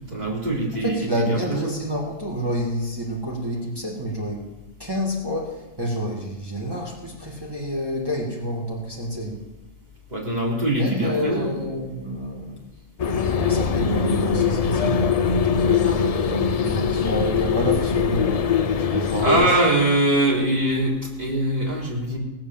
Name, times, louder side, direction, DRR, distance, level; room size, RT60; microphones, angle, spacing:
voice 1, 0.1-1.8 10.1-11.5 19.0-22.2, right 1 dB, 35° right, -4 dB, 3.6 m, -23 dB
voice 2, 0.8-4.5 4.8-9.4 10.8-12.6 13.3-18.4 18.9-19.5, equal, 20° right, -3 dB, 2.2 m, -28 dB
sound 1, 13.0-19.5, left 6 dB, 45° left, 0.5 m, -22 dB
18.0 x 7.6 x 7.3 m, 1.1 s
omnidirectional pair, 1.2 m